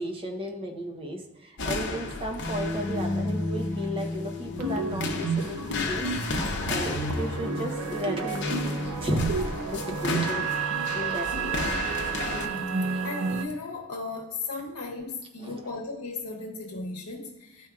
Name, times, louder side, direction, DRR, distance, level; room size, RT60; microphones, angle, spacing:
voice 1, 0.0-6.1 6.7-10.5 10.9-11.6 15.4-15.6, equal, 25° right, 0.8 m, -34 dB
sound 1, 1.6-12.5, left 3 dB, 50° left, 0.7 m, -35 dB
sound 2, 2.4-12.3, left 1 dB, 10° left, 0.9 m, -35 dB
sound 3, 4.6-13.4, right 5 dB, 90° right, 0.7 m, -31 dB
voice 2, 12.3-17.7, left 3 dB, 80° left, 0.9 m, -36 dB
11.5 x 4.5 x 2.4 m
head